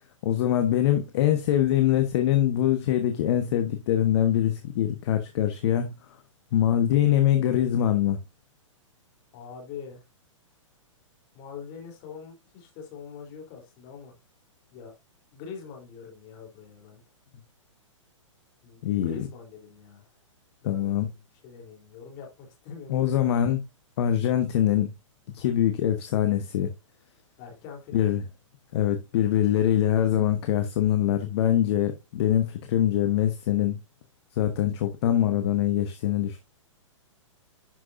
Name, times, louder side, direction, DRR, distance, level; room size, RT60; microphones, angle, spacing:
voice 1, 0.2-5.9 6.5-8.2 18.8-19.3 20.6-21.1 22.9-23.6 24.0-24.9 25.3-26.7 27.9-28.2 28.7-33.8 34.3-36.4, left 11 dB, 55° left, 1.2 m, -23 dB
voice 2, 9.3-10.0 11.3-14.1 14.7-14.9 15.3-17.0 18.6-20.1 20.6-20.9 21.4-23.2 27.4-28.1, left 6 dB, 40° left, 3.7 m, -43 dB
11.0 x 6.2 x 2.7 m
hypercardioid pair, 130°, 17 cm